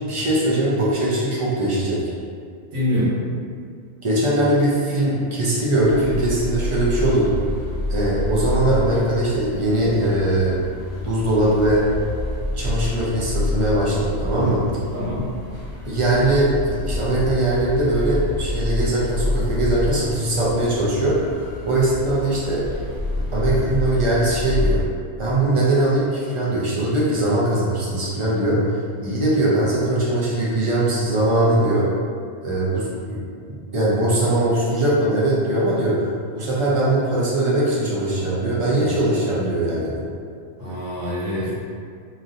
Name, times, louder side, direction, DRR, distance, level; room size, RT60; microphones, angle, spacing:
voice 1, 0.0-2.1 4.0-7.4 7.9-10.6 11.0-11.8 12.6-14.7 15.9-22.6 23.3-24.8 25.2-28.6 29.0-31.9 32.4-33.2 33.7-36.0 36.3-39.9, right 1 dB, 50° right, -7 dB, 0.3 m, -21 dB
voice 2, 2.7-3.1 14.9-15.3 29.0-29.2 40.6-41.5, left 1 dB, 90° right, -10 dB, 1.5 m, -25 dB
sound 1, 5.8-24.8, left 2 dB, 45° left, 0.8 m, -28 dB
3.1 x 2.6 x 2.6 m, 2.2 s
omnidirectional pair, 1.3 m